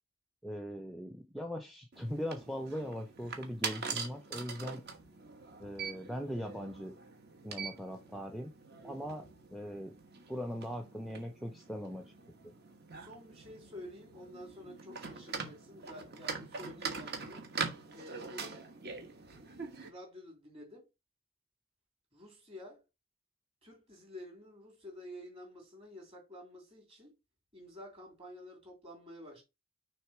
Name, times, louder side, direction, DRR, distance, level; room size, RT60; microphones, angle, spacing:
voice 1, 0.4-4.8 5.6-6.9 7.4-8.5 8.8-9.9 10.3-12.1 12.4-12.5, equal, ahead, 0.6 m, -40 dB
sound 1, 1.9-19.9, right 5 dB, 45° right, 1.2 m, -43 dB
voice 2, 13.0-17.5 17.9-18.7 19.1-20.9 22.1-22.8 23.6-27.2 27.5-29.4, left 1 dB, 25° right, 3.0 m, -50 dB
6.2 x 3.6 x 4.7 m
head